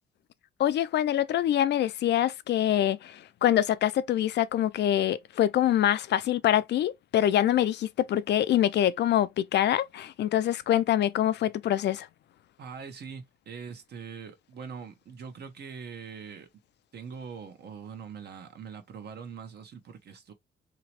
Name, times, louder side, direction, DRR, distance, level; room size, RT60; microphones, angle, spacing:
voice 1, 0.6-12.1, left 11 dB, 60° left, 0.4 m, -25 dB
voice 2, 12.6-16.5 16.9-20.3, right 6 dB, 55° right, 0.9 m, -42 dB
3.0 x 2.9 x 2.9 m
cardioid pair, 90°, 20 cm